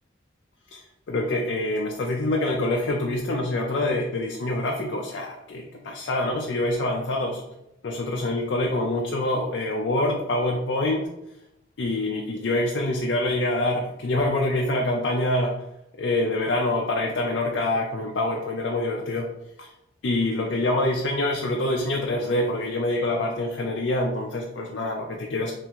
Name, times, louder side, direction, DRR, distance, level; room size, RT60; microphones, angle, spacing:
voice 1, 1.1-7.4 7.8-11.1 11.8-15.6 16.0-19.3 19.6-19.7 20.0-25.6, left 1 dB, 65° left, 0 dB, 0.5 m, -25 dB
3.5 x 3.3 x 2.9 m, 0.85 s
head